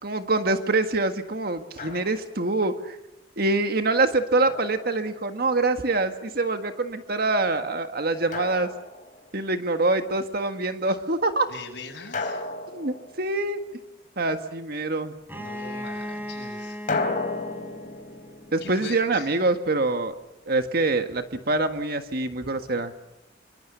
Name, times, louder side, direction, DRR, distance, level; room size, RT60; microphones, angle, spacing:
voice 1, 0.0-3.0 3.4-8.7 9.3-11.5 12.7-13.6 14.2-15.1 18.5-20.1 20.5-22.9, right 2 dB, 55° right, 7 dB, 1.7 m, -25 dB
Drum, 1.8-2.5 4.5-5.5 8.3-9.5 12.1-13.8 16.9-19.9, left 3 dB, 45° left, 3.6 m, -34 dB
voice 2, 11.5-12.4 15.4-16.8 18.6-19.3, left 3 dB, 65° left, -2 dB, 7.1 m, -41 dB
Bowed string instrument, 15.3-19.0, equal, 10° right, 3.5 m, -37 dB
27.0 x 24.5 x 6.9 m, 0.89 s
head